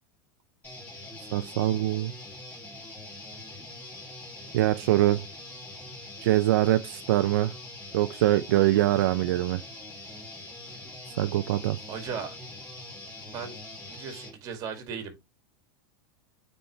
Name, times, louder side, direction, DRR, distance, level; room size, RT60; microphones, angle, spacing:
sound 1, 0.6-14.3, left 2 dB, 15° left, 3.0 m, -43 dB
voice 1, 1.3-2.1 4.5-5.2 6.2-7.5 7.9-9.6 11.2-11.8, right 14 dB, 75° right, 0.5 m, -23 dB
voice 2, 11.9-12.4 13.3-13.6 13.9-15.2, right 6 dB, 35° right, 2.2 m, -37 dB
8.8 x 4.2 x 3.2 m
supercardioid pair, 155°, 11 cm